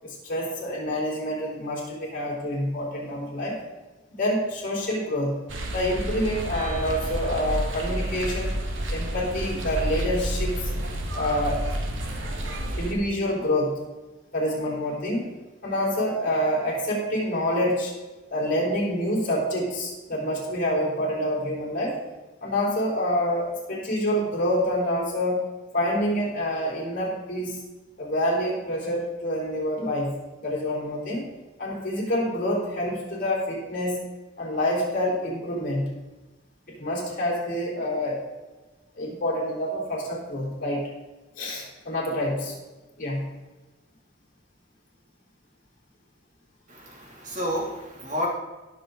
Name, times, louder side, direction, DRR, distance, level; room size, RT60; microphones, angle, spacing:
voice 1, 0.0-3.6 4.2-5.4 5.7-8.5 8.9-10.7 11.1-11.6 12.8-13.8 14.3-15.3 15.6-17.9 18.3-22.0 22.4-25.4 25.7-27.6 28.0-30.1 30.4-31.3 31.6-34.1 34.4-35.9 36.7-38.2 38.9-40.9 41.4-42.6 43.0-43.2, equal, 45° left, -4 dB, 4.3 m, -27 dB
sound 1, 5.5-12.9, right 1 dB, 85° right, 1.7 m, -30 dB
voice 2, 46.7-48.3, equal, 40° right, -2 dB, 2.8 m, -30 dB
18.0 x 6.7 x 4.0 m, 1.2 s
head